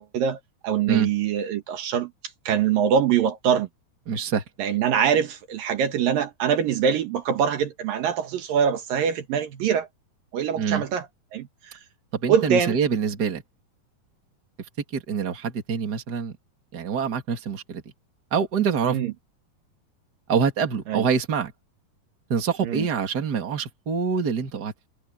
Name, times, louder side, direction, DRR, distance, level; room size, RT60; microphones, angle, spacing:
voice 1, 0.0-2.1 2.5-3.7 4.6-9.9 10.3-11.1 11.3-11.8 12.3-12.7 18.8-19.1 20.9-21.1 22.6-22.9, right 8 dB, 75° right, 3.1 m, -24 dB
voice 2, 4.1-4.4 10.6-10.9 12.1-13.4 14.9-16.3 16.7-17.8 18.3-19.0 20.3-21.5 22.3-24.9, right 6 dB, 30° right, 2.6 m, -25 dB
omnidirectional pair, 4.2 m